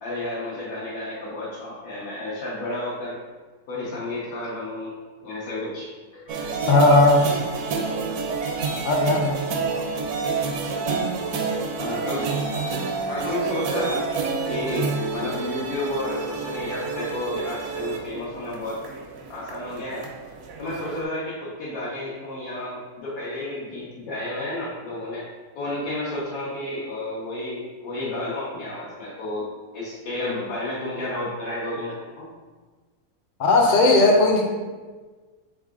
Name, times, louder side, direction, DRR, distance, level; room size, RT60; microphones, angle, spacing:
voice 1, 0.0-3.2 3.7-4.9 5.2-6.5 11.8-12.3 13.0-14.1 14.5-18.8 19.3-20.1 20.6-25.2 25.5-32.3, left 1 dB, 85° left, -8 dB, 1.5 m, -31 dB
sound 1, 6.3-21.0, right 4 dB, 80° right, 1.1 m, -29 dB
voice 2, 6.7-7.3 8.8-9.4 33.4-34.5, left 2 dB, 55° left, 1 dB, 0.5 m, -17 dB
3.9 x 3.7 x 3.6 m, 1.4 s
omnidirectional pair, 1.6 m